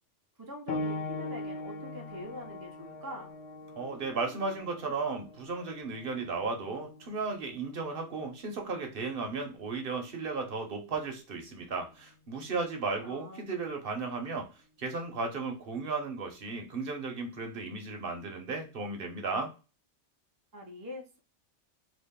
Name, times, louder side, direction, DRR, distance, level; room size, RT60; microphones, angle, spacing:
voice 1, 0.4-3.3 13.0-13.5 20.5-21.2, left 1 dB, 25° right, 1 dB, 0.5 m, -43 dB
sound 1, 0.7-10.9 11.9-12.0 12.7-12.8, left 2 dB, 60° left, 0.8 m, -42 dB
voice 2, 3.8-14.5 14.8-19.5, right 4 dB, 55° right, 3 dB, 0.9 m, -35 dB
3.0 x 2.4 x 3.5 m, 0.31 s
omnidirectional pair, 1.2 m